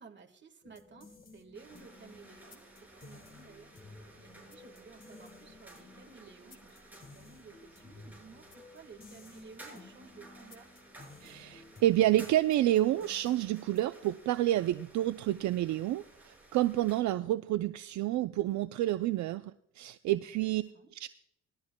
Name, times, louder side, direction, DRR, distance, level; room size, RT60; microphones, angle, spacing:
voice 1, 0.0-2.7 3.0-3.7 4.2-10.7 20.2-20.9, right 5 dB, 35° right, 5 dB, 1.6 m, -55 dB
sound 1, 0.6-14.1, left 3 dB, 30° left, 1.7 m, -55 dB
sound 2, 1.5-17.0, right 2 dB, 5° right, 5.5 m, -56 dB
voice 2, 11.2-20.6 20.9-21.1, right 14 dB, 70° right, 12 dB, 0.5 m, -29 dB
19.0 x 13.0 x 2.2 m, 0.72 s
cardioid pair, 90°, 30 cm